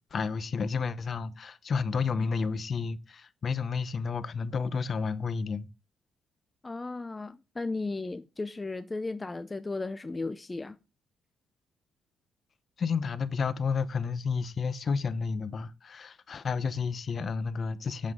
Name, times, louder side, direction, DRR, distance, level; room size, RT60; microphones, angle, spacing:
voice 1, 0.1-5.7 12.8-18.1, left 5 dB, 45° left, 0.8 m, -31 dB
voice 2, 6.6-10.8, left 3 dB, 20° left, 0.6 m, -35 dB
8.5 x 7.2 x 3.7 m
cardioid pair, 90°, 0 cm